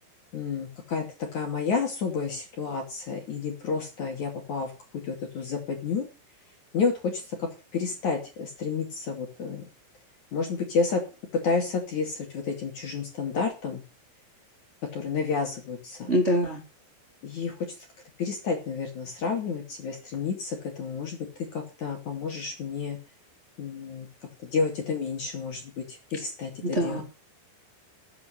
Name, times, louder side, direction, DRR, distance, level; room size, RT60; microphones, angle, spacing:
voice 1, 0.3-4.7 5.0-6.0 6.7-9.7 10.3-11.0 11.4-13.8 14.9-16.1 17.2-17.5 18.2-21.3 21.5-23.0 23.6-24.1 24.4-27.0, left 5 dB, 45° left, 2 dB, 3.4 m, -30 dB
voice 2, 16.1-16.6 26.6-27.0, equal, 20° right, 0 dB, 2.6 m, -24 dB
14.0 x 7.9 x 6.4 m, 0.32 s
omnidirectional pair, 5.3 m